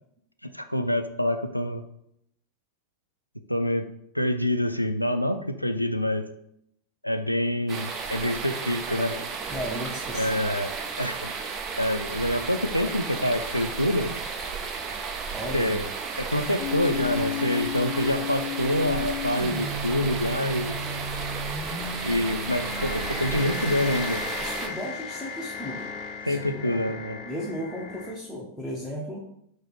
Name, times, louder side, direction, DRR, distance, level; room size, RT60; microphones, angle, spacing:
voice 1, 0.4-1.8 3.5-6.3 7.0-9.2 10.1-11.3 11.8-14.1 15.5-15.8 16.2-20.8 22.0-24.2 26.2-27.2, left 1 dB, 90° left, 8 dB, 0.3 m, -26 dB
sound 1, 7.7-24.7, right 5 dB, 30° right, 0.6 m, -34 dB
voice 2, 9.5-10.4 15.3-15.8 24.4-25.9 26.2-26.9 27.2-29.3, equal, ahead, -5 dB, 0.8 m, -35 dB
sound 2, 16.6-28.2, left 5 dB, 35° left, 0.6 m, -34 dB
5.0 x 2.0 x 4.5 m, 0.74 s
figure-of-eight pair, 90°, 0 cm